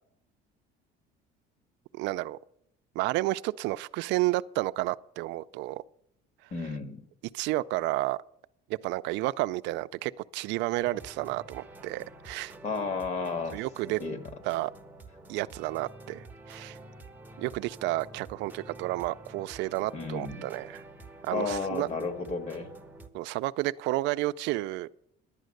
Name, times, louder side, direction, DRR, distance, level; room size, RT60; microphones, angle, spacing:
voice 1, 2.0-2.4 3.0-5.8 7.3-8.2 8.8-12.5 13.5-14.0 14.4-14.7 15.3-16.8 17.4-20.8 21.2-21.9 23.1-24.9, right 18 dB, 75° right, 0.4 m, -31 dB
voice 2, 6.5-7.0 12.6-13.6 14.0-14.2 19.9-20.5 21.3-22.7, left 4 dB, 35° left, 1.6 m, -32 dB
sound 1, 10.8-23.1, right 2 dB, 10° right, 0.8 m, -48 dB
11.5 x 9.2 x 6.4 m
cardioid pair, 155°, 19 cm